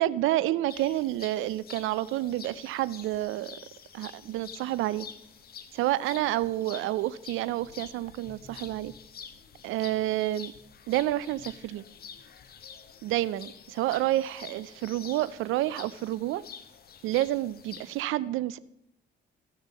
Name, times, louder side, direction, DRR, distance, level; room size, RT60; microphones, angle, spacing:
voice 1, 0.0-3.6 3.9-5.1 5.7-8.9 9.6-10.5 10.9-11.8 13.0-16.4 17.0-18.6, right 15 dB, 90° right, 0.4 m, -29 dB
sound 1, 0.7-18.0, left 7 dB, 50° left, 0.8 m, -48 dB
16.0 x 6.5 x 3.5 m
cardioid pair, 90°, 20 cm